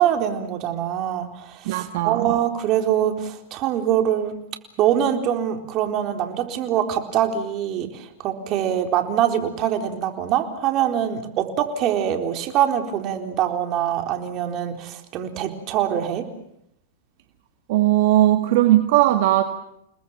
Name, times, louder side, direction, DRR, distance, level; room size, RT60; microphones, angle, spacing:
voice 1, 0.0-4.4 4.8-16.3, right 10 dB, 40° right, 5 dB, 4.1 m, -24 dB
voice 2, 1.7-2.3 17.7-19.4, right 14 dB, 60° right, 7 dB, 1.9 m, -18 dB
30.0 x 20.0 x 7.4 m, 0.76 s
hypercardioid pair, 115°, 0 cm